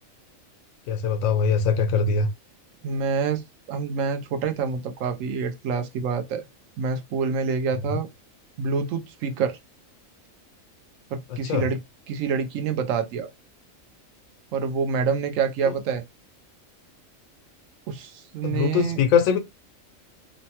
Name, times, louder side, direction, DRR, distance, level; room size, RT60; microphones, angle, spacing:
voice 1, 0.9-2.3 7.9-8.0 11.3-11.7 18.4-19.4, left 6 dB, 85° left, 1.0 m, -22 dB
voice 2, 2.8-6.5 6.8-8.1 8.6-9.6 11.1-11.8 12.1-13.3 14.5-16.0 17.9-19.0, right 5 dB, 75° right, 1.0 m, -27 dB
3.1 x 2.1 x 2.8 m
omnidirectional pair, 1.4 m